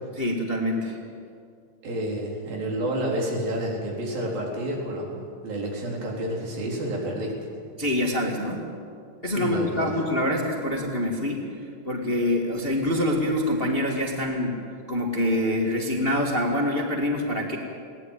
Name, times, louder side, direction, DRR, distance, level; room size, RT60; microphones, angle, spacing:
voice 1, 0.2-1.0 7.8-8.6 9.2-11.5 11.8-14.6 14.9-17.6, left 1 dB, 20° left, 0 dB, 1.6 m, -25 dB
voice 2, 1.8-7.3 9.4-10.0, right 1 dB, 90° right, -2 dB, 5.8 m, -29 dB
21.0 x 18.0 x 9.2 m, 2.3 s
omnidirectional pair, 4.0 m